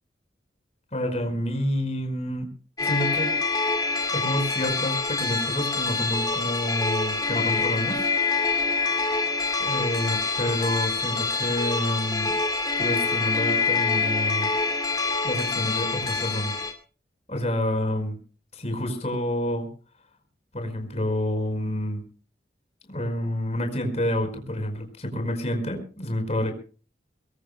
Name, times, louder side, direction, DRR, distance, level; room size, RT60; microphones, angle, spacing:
voice 1, 0.9-2.5 2.8-3.4 4.1-8.1 9.6-12.3 12.8-14.5 15.2-16.5 17.3-18.2 18.5-19.7 20.5-22.0 22.9-26.5, left 1 dB, 40° left, 5 dB, 5.1 m, -28 dB
sound 1, 2.8-16.7, left 4 dB, 20° left, 2.5 m, -26 dB
24.0 x 22.0 x 2.2 m, 0.38 s
head